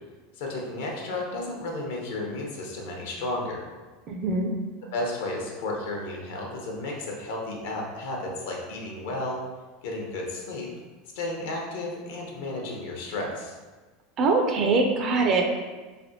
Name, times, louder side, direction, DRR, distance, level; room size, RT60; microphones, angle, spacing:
voice 1, 0.4-3.6 4.9-9.4 9.8-10.7 11.1-13.5, left 2 dB, 80° left, -1 dB, 0.7 m, -33 dB
voice 2, 4.1-4.5 14.2-15.5, right 3 dB, 40° right, 3 dB, 0.4 m, -23 dB
3.3 x 2.7 x 2.7 m, 1.3 s
supercardioid pair, 130°, 0 cm